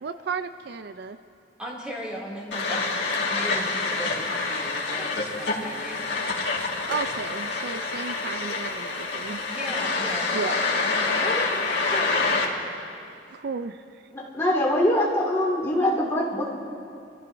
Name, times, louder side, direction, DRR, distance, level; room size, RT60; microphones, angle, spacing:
voice 1, 0.0-1.2 6.5-9.4 10.3-10.6 13.3-14.0, right 5 dB, 60° right, 10 dB, 0.4 m, -34 dB
voice 2, 1.6-3.0 3.3-6.0 9.5-12.5, equal, 5° right, -5 dB, 2.6 m, -37 dB
sound 1, 2.5-12.4, left 3 dB, 70° left, 1.9 m, -27 dB
voice 3, 14.1-16.5, left 1 dB, 15° left, -4 dB, 2.3 m, -23 dB
26.5 x 13.5 x 2.7 m, 2.5 s
head